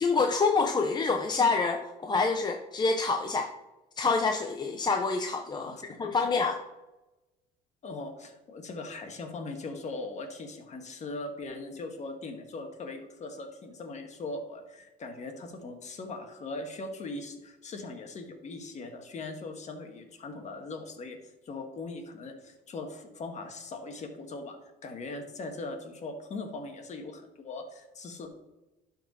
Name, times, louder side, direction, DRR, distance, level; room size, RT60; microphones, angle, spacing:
voice 1, 0.0-3.5 4.0-5.7 6.0-6.6, left 4 dB, 25° left, 4 dB, 0.6 m, -27 dB
voice 2, 7.8-28.3, left 3 dB, 45° left, 5 dB, 1.4 m, -40 dB
11.5 x 4.2 x 4.1 m, 1.0 s
cardioid pair, 110°, 17 cm